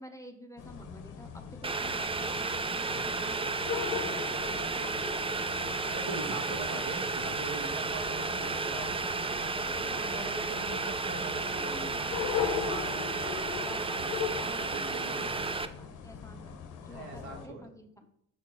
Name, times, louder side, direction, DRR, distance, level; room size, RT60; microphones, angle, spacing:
voice 1, 0.0-3.5 3.9-5.1 8.5-10.6 11.5-13.1 13.7-13.8 14.4-18.1, left 1 dB, 10° left, 4 dB, 0.8 m, -50 dB
sound 1, 0.6-17.5, left 7 dB, 90° left, 0.9 m, -40 dB
Boiling, 1.6-15.7, right 3 dB, 20° right, 0.5 m, -33 dB
voice 2, 5.8-8.9 9.9-12.0 12.3-13.4 13.8-15.6 16.9-17.7, right 3 dB, 75° right, -1 dB, 1.9 m, -42 dB
5.8 x 4.4 x 6.1 m, 0.72 s
cardioid pair, 90°, 30 cm